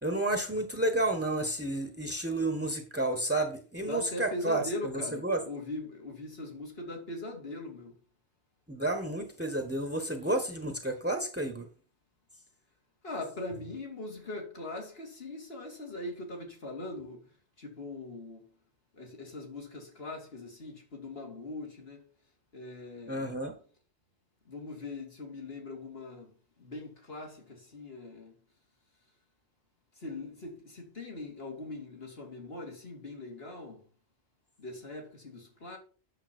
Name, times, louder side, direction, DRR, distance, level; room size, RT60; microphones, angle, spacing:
voice 1, 0.0-5.5 8.7-11.7 23.1-23.5, right 1 dB, 10° right, 1.4 m, -31 dB
voice 2, 3.9-7.9 13.0-17.2 17.6-18.4 19.0-22.0 22.5-23.3 24.5-26.3 26.6-27.4 27.7-28.3 30.0-33.8 34.6-35.8, left 2 dB, 60° left, 3.1 m, -41 dB
9.0 x 7.2 x 4.5 m
omnidirectional pair, 1.1 m